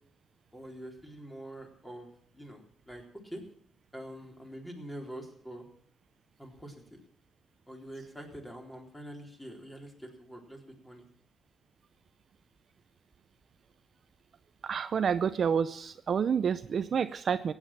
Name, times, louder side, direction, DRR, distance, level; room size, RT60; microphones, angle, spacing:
voice 1, 0.5-3.4 3.9-5.6 6.4-7.0 7.7-11.0, right 1 dB, 10° left, 1 dB, 3.8 m, -45 dB
voice 2, 14.6-17.5, right 7 dB, 50° right, 12 dB, 0.6 m, -29 dB
16.0 x 9.0 x 7.4 m, 0.64 s
cardioid pair, 90°, 0 cm